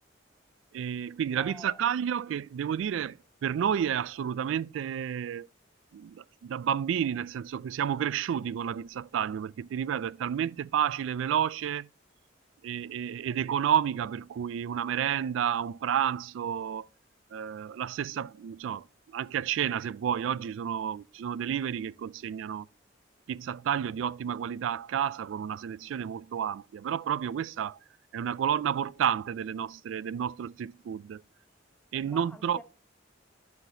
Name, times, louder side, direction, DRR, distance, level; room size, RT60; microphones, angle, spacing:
voice 1, 0.7-5.5 5.9-11.9 12.6-16.9 17.3-18.9 19.1-22.7 23.3-27.8 28.1-31.2 31.9-32.6, right 9 dB, 75° right, 0.3 m, -31 dB
voice 2, 1.4-1.8 32.0-32.6, left 1 dB, 5° left, 0.5 m, -47 dB
11.5 x 5.9 x 2.7 m
head